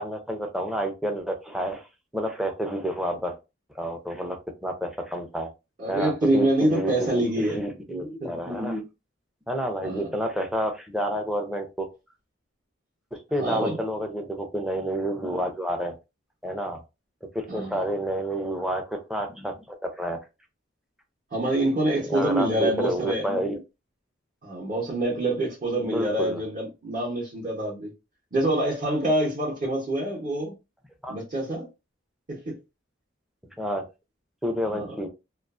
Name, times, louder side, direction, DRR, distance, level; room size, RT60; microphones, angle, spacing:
voice 1, 0.0-1.8 2.1-3.4 3.7-5.5 5.9-8.9 9.5-11.9 13.1-15.9 16.4-16.8 17.3-20.2 22.1-23.6 25.8-26.4 31.0-31.2 33.6-33.8 34.4-35.1, equal, ahead, 0.4 m, -29 dB
voice 2, 5.8-7.6 8.2-8.3 9.8-10.0 13.4-13.8 17.5-17.8 21.3-23.2 24.4-27.9 28.3-30.5 31.1-31.7 32.3-32.6 34.7-34.9, right 1 dB, 40° right, 0.8 m, -26 dB
2.4 x 2.3 x 2.3 m
head